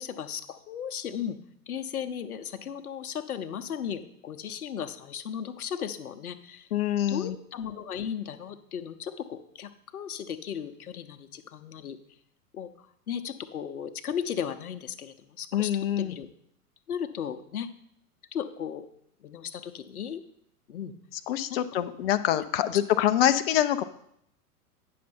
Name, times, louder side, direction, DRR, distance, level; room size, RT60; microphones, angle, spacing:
voice 1, 0.0-1.4 1.7-6.7 7.1-12.0 12.5-16.3 16.9-17.7 18.3-18.9 19.2-20.2 20.7-20.9 21.5-21.6 22.6-22.8 23.3-23.4, left 8 dB, 70° left, 9 dB, 0.8 m, -36 dB
voice 2, 6.7-7.3 15.5-16.1 21.3-23.8, left 11 dB, 40° left, 11 dB, 0.5 m, -25 dB
9.2 x 6.5 x 4.4 m, 0.72 s
figure-of-eight pair, 105°, 46 cm